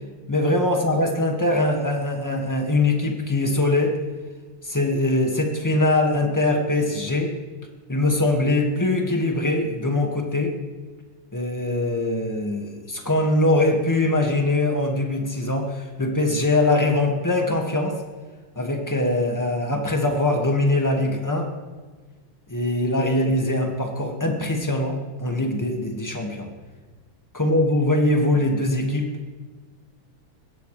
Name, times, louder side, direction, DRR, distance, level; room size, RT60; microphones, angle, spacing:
voice 1, 0.3-4.0 4.6-7.3 7.9-10.6 11.3-18.0 18.5-21.5 22.5-26.5 27.3-29.1, left 2 dB, 10° left, 2 dB, 1.7 m, -22 dB
22.0 x 17.0 x 3.4 m, 1.4 s
omnidirectional pair, 2.4 m